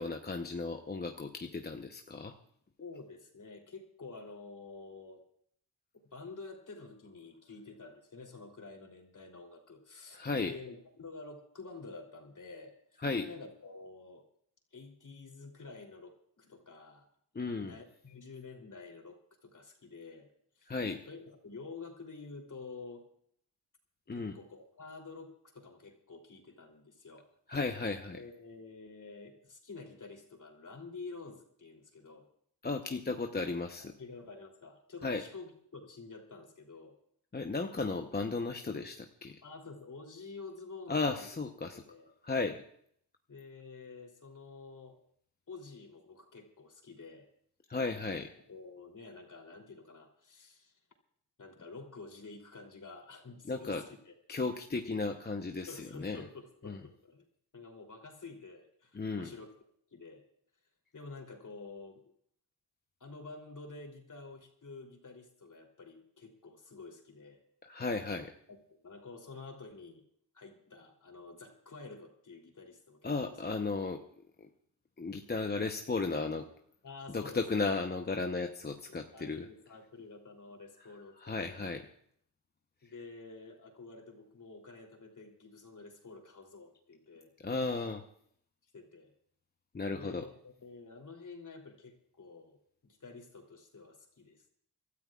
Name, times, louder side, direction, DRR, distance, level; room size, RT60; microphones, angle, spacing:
voice 1, 0.0-2.3 10.1-10.5 13.0-13.3 17.3-17.7 20.7-21.0 24.1-24.4 27.5-28.2 32.6-33.9 35.0-35.2 37.3-39.4 40.9-41.8 42.2-42.6 47.7-48.3 53.4-53.8 54.3-56.2 56.6-56.8 58.9-59.3 67.6-68.3 73.0-74.0 74.4-74.5 75.0-76.5 77.1-79.4 81.2-81.8 87.4-88.0 89.7-90.2, left 3 dB, 25° left, 4 dB, 0.8 m, -35 dB
voice 2, 2.8-5.2 5.9-14.2 14.7-17.1 17.6-20.3 20.6-20.7 21.0-23.1 24.1-27.6 28.1-32.3 33.8-37.0 39.4-41.3 41.8-42.1 43.3-45.0 45.5-47.3 48.1-50.7 51.4-54.1 55.7-57.2 57.5-59.5 59.9-60.2 60.9-62.0 63.0-67.4 68.5-70.0 70.3-73.1 76.8-77.7 79.1-81.7 82.8-87.3 87.7-87.8 88.7-89.1 89.9-94.5, left 3 dB, 45° left, 1 dB, 3.1 m, -49 dB
29.5 x 13.0 x 2.4 m, 0.64 s
cardioid pair, 80°, 42 cm